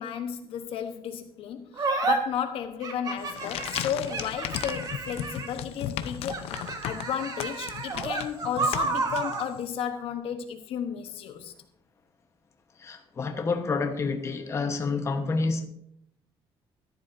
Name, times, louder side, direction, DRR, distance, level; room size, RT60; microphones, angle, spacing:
voice 1, 0.0-6.4 6.8-11.5, left 8 dB, 70° left, 1.0 m, -33 dB
sound 1, 1.8-2.2 2.8-5.6 6.2-9.5, right 4 dB, 40° right, 1.4 m, -31 dB
sound 2, 3.2-9.7, left 10 dB, 90° left, 0.7 m, -36 dB
voice 2, 12.8-15.7, left 4 dB, 30° left, 1.1 m, -28 dB
14.0 x 11.0 x 2.6 m
cardioid pair, 150°, 10 cm